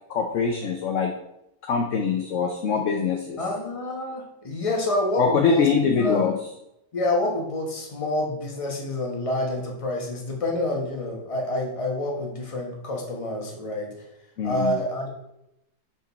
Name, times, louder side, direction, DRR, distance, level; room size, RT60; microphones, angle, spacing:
voice 1, 0.1-1.1 1.7-3.4 5.2-6.4 14.4-14.7, left 5 dB, 60° left, 3 dB, 0.8 m, -23 dB
voice 2, 3.4-5.6 6.0-6.2 6.9-13.9 14.4-15.1, left 1 dB, 25° left, 0 dB, 1.0 m, -27 dB
5.4 x 5.1 x 4.0 m, 0.84 s
omnidirectional pair, 1.8 m